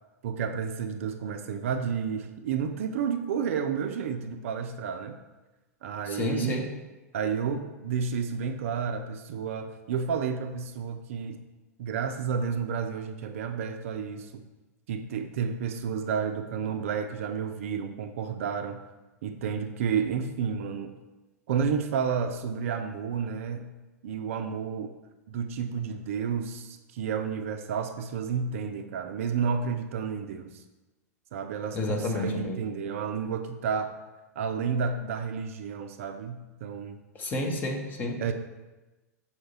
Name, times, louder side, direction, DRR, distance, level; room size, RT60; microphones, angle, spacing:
voice 1, 0.2-5.2 5.8-6.6 7.1-11.4 11.8-14.4 14.9-18.8 19.2-21.0 21.5-23.7 24.0-24.9 25.3-30.6 31.3-33.9 34.4-37.0 38.2-38.3, right 6 dB, 55° right, 8 dB, 0.4 m, -31 dB
voice 2, 6.1-6.7 31.7-32.6 37.2-38.2, left 2 dB, 20° left, 2 dB, 0.9 m, -30 dB
6.4 x 4.3 x 4.4 m, 1.1 s
figure-of-eight pair, 95°, 9 cm